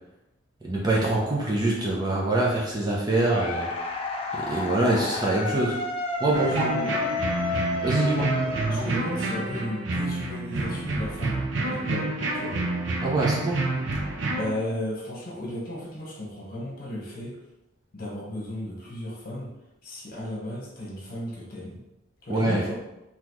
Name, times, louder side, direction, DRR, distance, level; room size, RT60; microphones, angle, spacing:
voice 1, 0.6-3.7 4.3-5.8 6.2-6.4 7.8-8.3 13.0-13.6 22.3-22.6, right 2 dB, 20° right, -3 dB, 0.6 m, -24 dB
sound 1, 3.3-9.4, left 2 dB, 30° left, 0.4 m, -31 dB
voice 2, 6.3-7.0 8.7-12.1 12.3-12.6 14.4-17.4 17.9-19.5 19.8-21.8 22.2-22.7, left 1 dB, 45° left, -4 dB, 1.2 m, -34 dB
sound 2, 6.3-14.5, right 2 dB, 60° right, 0.6 m, -28 dB
3.9 x 3.0 x 3.0 m, 0.92 s
head